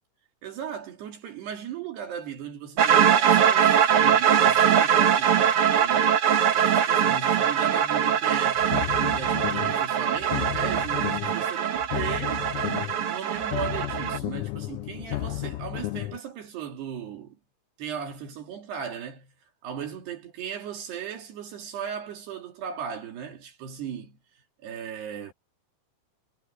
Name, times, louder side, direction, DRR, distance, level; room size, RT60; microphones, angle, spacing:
voice 1, 0.4-6.2 6.5-12.5 13.1-17.4 17.8-19.3 19.6-24.2 24.6-25.3, right 8 dB, 55° right, 4.2 m, -37 dB
sound 1, 2.8-14.2, right 8 dB, 80° right, 1.2 m, -22 dB
sound 2, 8.6-9.8 10.2-11.4 11.8-13.0 13.4-16.2, left 17 dB, 90° left, 3.7 m, -33 dB
omnidirectional pair, 6.0 m